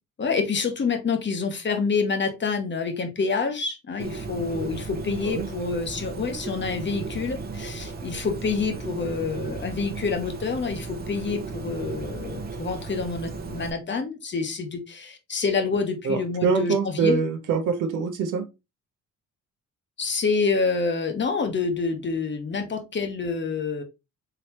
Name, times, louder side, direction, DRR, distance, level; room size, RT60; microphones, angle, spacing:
voice 1, 0.2-17.2 20.0-23.8, left 4 dB, 40° left, 1.0 m, -27 dB
Bird, 4.0-13.7, right 4 dB, 30° right, 0.9 m, -35 dB
voice 2, 16.0-18.4, right 5 dB, 80° right, 0.9 m, -24 dB
3.8 x 3.4 x 2.9 m
cardioid pair, 90°, 30 cm